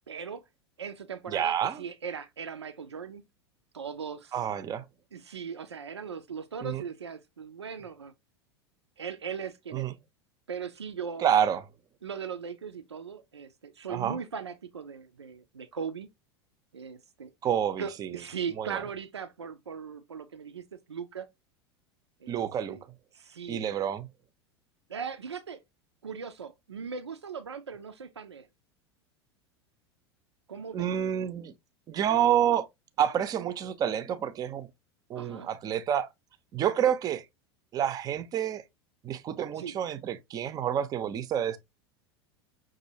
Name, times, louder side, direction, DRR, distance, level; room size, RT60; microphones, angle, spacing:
voice 1, 0.1-0.4 0.8-3.2 3.7-4.3 5.1-8.1 9.0-9.9 10.5-11.3 12.0-16.1 16.7-17.3 17.8-21.3 22.2-22.4 22.7-22.8 23.1-23.6 24.9-25.6 26.0-28.5 30.5-30.9 35.1-35.5 39.5-39.7, right 6 dB, 80° right, 0.4 m, -39 dB
voice 2, 1.3-1.8 4.3-4.9 6.6-6.8 9.7-10.0 11.2-11.6 13.9-14.2 17.4-18.2 18.6-18.8 22.3-22.8 23.5-24.1 30.7-31.5 31.9-32.7 33.0-34.7 35.1-36.1 36.5-37.2 37.7-38.6 39.0-41.6, right 9 dB, 25° right, 0.6 m, -28 dB
6.1 x 2.6 x 2.7 m
figure-of-eight pair, 80°, 14 cm